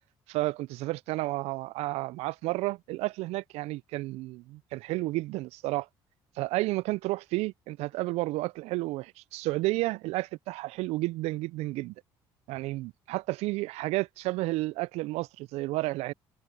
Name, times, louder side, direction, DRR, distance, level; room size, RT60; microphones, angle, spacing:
voice 1, 0.3-5.9 6.4-11.9 12.5-16.1, right 20 dB, 75° right, 0.4 m, -31 dB
supercardioid pair, 65°, 11 cm